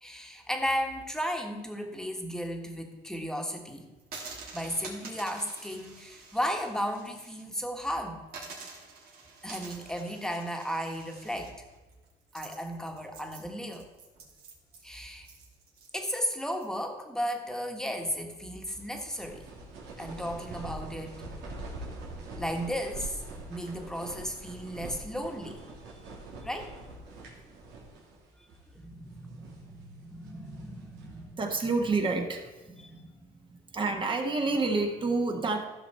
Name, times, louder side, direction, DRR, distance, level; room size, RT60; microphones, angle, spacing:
voice 1, 0.0-3.9 4.5-8.2 9.4-11.5 12.3-13.8 14.8-15.3 15.9-19.4 20.0-21.2 22.3-23.2 23.5-25.6 25.9-26.0 26.4-26.7 28.4-28.5 28.7-31.4 32.8-33.1, equal, 5° left, 3 dB, 1.6 m, -35 dB
sound 1, 4.0-7.4 7.8-7.9 8.3-16.7, right 4 dB, 65° right, 2.7 m, -48 dB
sound 2, 18.7-28.2 28.5-28.6 29.2-29.7 30.2-31.3, right 2 dB, 90° right, 2.5 m, -44 dB
voice 2, 31.4-32.7 33.0-33.1 33.5-35.6, right 3 dB, 30° right, 3 dB, 1.5 m, -29 dB
14.5 x 6.1 x 4.4 m, 1.2 s
cardioid pair, 110°, 17 cm